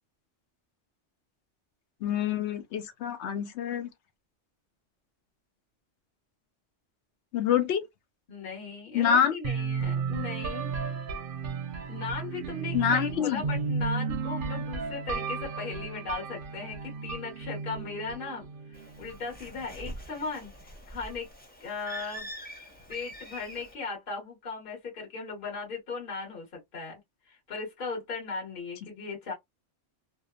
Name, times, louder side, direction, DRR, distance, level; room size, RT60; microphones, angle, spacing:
voice 1, 2.0-3.9 7.3-7.9 8.9-9.3 12.7-13.4, left 8 dB, 70° left, 0.8 m, -26 dB
voice 2, 8.3-10.7 11.9-21.3 21.6-22.3 22.9-27.0 27.3-29.3, left 4 dB, 45° left, 1.3 m, -37 dB
sound 1, 9.4-19.3, right 5 dB, 55° right, 0.6 m, -34 dB
Bird, 18.7-23.7, right 1 dB, 10° left, 0.5 m, -44 dB
2.7 x 2.0 x 2.3 m
omnidirectional pair, 1.2 m